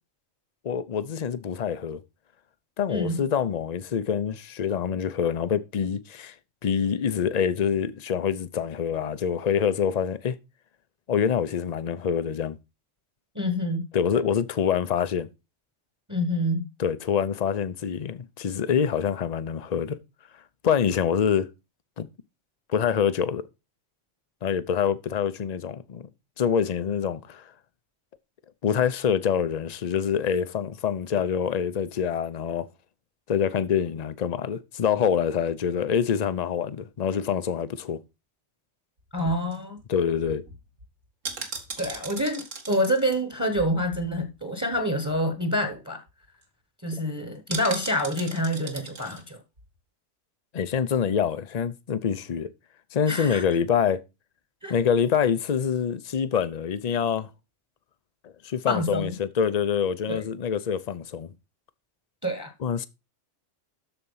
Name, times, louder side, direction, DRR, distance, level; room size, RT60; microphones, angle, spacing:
voice 1, 0.6-2.0 2.8-6.3 6.6-10.3 11.1-12.6 13.9-15.3 16.8-20.0 20.6-21.5 22.0-22.1 22.7-23.4 24.4-26.1 26.4-27.5 28.6-32.7 33.3-38.0 39.9-40.4 50.5-52.5 52.9-54.0 54.7-57.3 58.2-61.3 62.6-62.9, left 7 dB, 45° left, 0.6 m, -26 dB
voice 2, 2.9-3.2 13.3-13.9 16.1-16.7 39.1-39.8 41.8-46.0 46.8-49.4 53.1-53.4 54.6-54.7 58.7-59.1 60.1-60.2 62.2-62.5, equal, 15° right, 1.2 m, -27 dB
sound 1, 39.0-44.4 44.7-44.8 45.1-45.3 45.7-45.8 46.1-46.4 47.5-49.2 49.6-49.7, right 4 dB, 65° right, 2.1 m, -39 dB
13.0 x 4.4 x 5.6 m
omnidirectional pair, 1.4 m